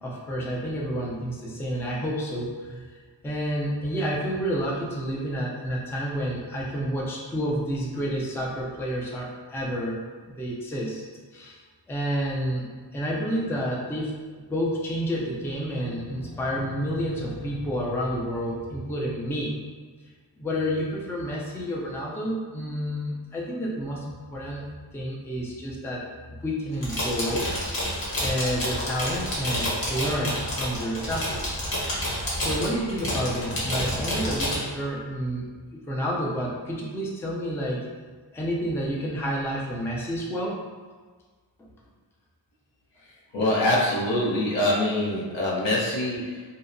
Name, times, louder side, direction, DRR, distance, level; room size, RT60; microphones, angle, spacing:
voice 1, 0.0-11.0 11.3-11.6 11.9-14.2 14.5-19.5 20.4-24.6 24.9-26.1 26.4-31.5 32.3-35.5 35.7-37.9 38.3-40.6 41.6-41.7, equal, 5° left, -3 dB, 0.4 m, -30 dB
sound 1, 26.7-34.6, equal, 55° left, 1.1 m, -29 dB
voice 2, 43.0-46.4, left 1 dB, 80° left, -5 dB, 0.8 m, -25 dB
2.7 x 2.1 x 2.5 m, 1.5 s
cardioid pair, 75°, 44 cm